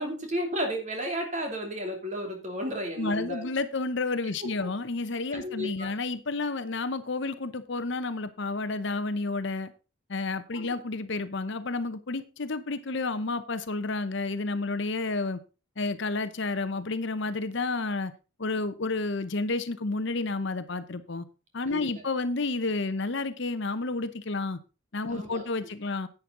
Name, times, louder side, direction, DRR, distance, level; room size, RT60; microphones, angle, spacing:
voice 1, 0.0-3.5 4.6-4.7 5.3-5.9 10.5-10.8 21.7-22.0 25.1-25.4, equal, 35° right, 2.8 m, -33 dB
voice 2, 3.0-9.7 10.1-15.4 15.8-18.1 18.4-21.2 21.5-24.6 24.9-26.1, left 3 dB, 55° left, 0.8 m, -30 dB
10.5 x 8.7 x 3.8 m
head